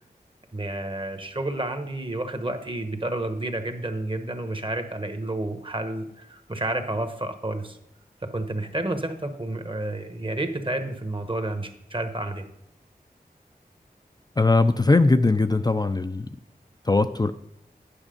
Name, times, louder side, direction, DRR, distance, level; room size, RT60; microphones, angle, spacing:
voice 1, 0.5-7.8 8.3-12.4, right 2 dB, 35° right, 7 dB, 1.2 m, -30 dB
voice 2, 14.4-16.3 16.9-17.3, left 3 dB, 25° left, 9 dB, 0.4 m, -20 dB
9.8 x 6.1 x 5.2 m, 0.79 s
wide cardioid pair, 45°, 16 cm